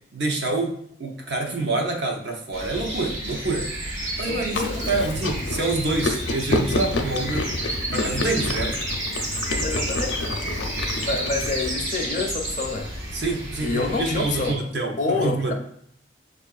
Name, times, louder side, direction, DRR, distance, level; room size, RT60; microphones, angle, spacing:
voice 1, 0.1-3.7 4.2-7.5 7.9-8.8 13.1-15.5, right 3 dB, 65° right, 0.7 m, -27 dB
sound 1, 2.5-14.5, right 1 dB, 90° right, 1.3 m, -31 dB
voice 2, 4.2-5.0 9.6-10.4 11.0-12.9 13.6-14.6 15.0-15.5, left 3 dB, 40° left, 0.5 m, -28 dB
Chewing mastication, 4.5-11.7, left 2 dB, 85° left, 0.5 m, -29 dB
6.5 x 2.5 x 2.3 m
head